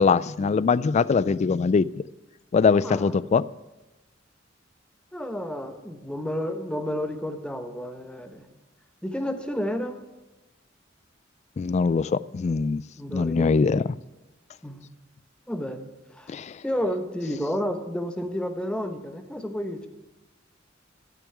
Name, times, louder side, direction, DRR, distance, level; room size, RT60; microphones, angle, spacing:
voice 1, 0.0-1.9 2.5-3.5 11.6-12.8 13.1-13.8 16.3-16.5, left 5 dB, 35° left, 19 dB, 0.3 m, -22 dB
voice 2, 2.8-3.2 5.1-8.5 9.0-10.0 13.0-13.8 14.6-14.8 15.5-16.3 16.6-19.9, equal, 5° left, 6 dB, 1.1 m, -31 dB
12.0 x 6.2 x 9.2 m, 1.1 s
head